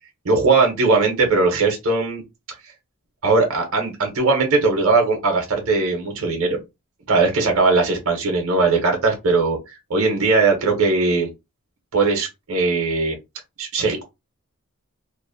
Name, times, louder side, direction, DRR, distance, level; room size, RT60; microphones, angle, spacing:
voice 1, 0.2-2.2 3.2-6.6 7.1-9.6 9.9-11.3 11.9-13.2 13.6-14.0, right 3 dB, 65° right, 0.7 m, -19 dB
2.5 x 2.0 x 2.5 m
head